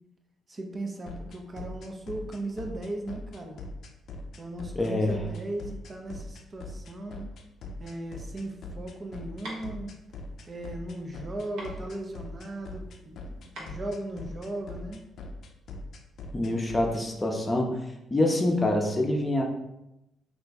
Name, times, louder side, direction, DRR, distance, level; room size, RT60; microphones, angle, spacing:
voice 1, 0.5-3.6 4.4-7.2 7.8-9.9 10.5-15.0, right 1 dB, 30° right, 2 dB, 0.5 m, -37 dB
sound 1, 1.1-17.0, left 2 dB, 65° left, 0.4 m, -41 dB
voice 2, 4.7-5.2 16.3-17.8 18.1-19.4, left 1 dB, 20° left, 1 dB, 0.6 m, -25 dB
sound 2, 8.4-14.9, right 1 dB, 80° right, 0.9 m, -47 dB
2.9 x 2.5 x 3.4 m, 0.89 s
cardioid pair, 90°, 0 cm